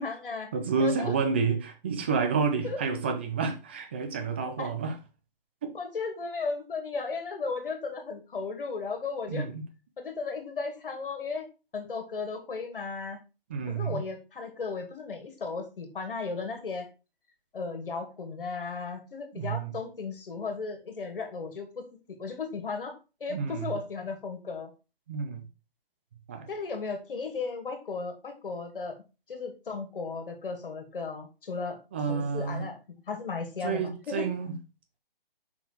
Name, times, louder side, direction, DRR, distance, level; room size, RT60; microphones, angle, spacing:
voice 1, 0.0-0.5 0.8-1.1 2.6-2.8 4.6-4.7 5.7-9.5 10.0-11.5 11.7-13.2 13.7-16.9 17.5-24.7 26.5-29.0 29.3-31.8 32.1-32.8 33.1-34.3, left 4 dB, 65° left, 2.2 m, -35 dB
voice 2, 0.5-4.9 5.6-5.7 9.3-9.6 13.5-14.0 19.3-19.7 23.3-23.7 25.1-25.5 26.3-26.5 31.9-32.7 33.6-34.5, right 5 dB, 10° right, 0.4 m, -29 dB
5.7 x 4.4 x 4.6 m
hypercardioid pair, 150°, 29 cm